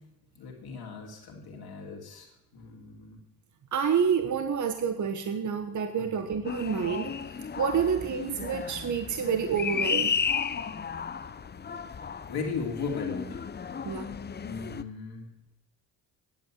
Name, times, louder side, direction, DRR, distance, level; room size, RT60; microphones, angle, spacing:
voice 1, 0.3-3.2 6.0-6.1 12.3-13.5 14.4-15.3, left 5 dB, 60° left, -1 dB, 2.6 m, -37 dB
voice 2, 3.7-7.1 7.6-10.1 13.8-14.1, right 7 dB, 40° right, 7 dB, 1.1 m, -28 dB
sound 1, 6.4-14.8, left 6 dB, 25° left, 0.6 m, -34 dB
10.5 x 8.3 x 7.4 m, 0.88 s
supercardioid pair, 70°, 43 cm